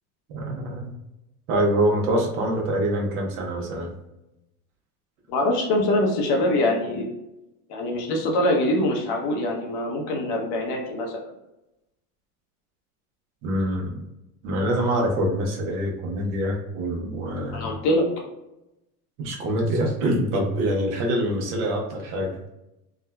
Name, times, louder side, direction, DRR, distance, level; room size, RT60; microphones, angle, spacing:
voice 1, 0.3-0.9 1.5-3.9 13.4-14.0 14.4-17.7 19.2-22.5, right 1 dB, 70° right, 0 dB, 1.0 m, -25 dB
voice 2, 5.3-7.1 7.7-11.2 17.5-18.1, left 1 dB, 55° left, 1 dB, 0.9 m, -23 dB
3.6 x 2.1 x 2.3 m, 0.91 s
supercardioid pair, 105°, 47 cm